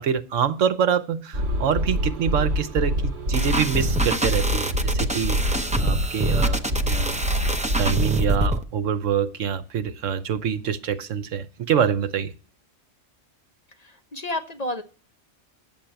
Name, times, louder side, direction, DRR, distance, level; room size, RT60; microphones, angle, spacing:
voice 1, 0.0-6.6 6.9-7.2 7.8-12.3, right 8 dB, 75° right, 11 dB, 1.1 m, -25 dB
sound 1, 1.3-8.6, equal, 55° right, 2.1 m, -25 dB
sound 2, 3.3-8.6, right 1 dB, 10° right, 0.3 m, -27 dB
voice 2, 13.8-14.8, left 1 dB, 35° left, 5 dB, 0.9 m, -31 dB
9.2 x 7.3 x 9.0 m, 0.41 s
omnidirectional pair, 1.3 m